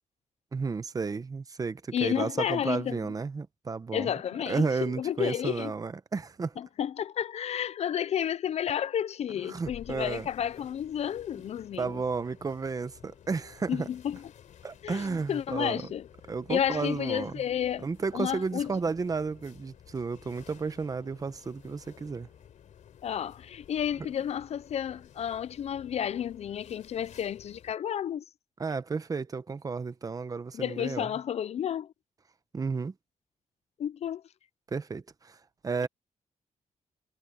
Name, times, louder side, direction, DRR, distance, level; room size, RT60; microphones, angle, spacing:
voice 1, 0.5-4.1 4.5-6.6 9.5-10.3 11.8-13.9 14.6-15.8 16.3-17.4 17.8-22.3 28.6-31.1 32.5-32.9 34.7-35.4 35.6-35.9, right 4 dB, 25° right, 0.9 m, -32 dB
voice 2, 1.9-3.0 3.9-5.7 6.6-12.0 13.7-14.2 14.8-16.1 16.5-17.9 18.1-18.7 23.0-28.2 30.5-31.9 33.8-34.2, left 9 dB, 55° left, 0.4 m, -31 dB
sound 1, 9.6-27.8, left 9 dB, 75° left, 3.5 m, -53 dB
wide cardioid pair, 145°, 13 cm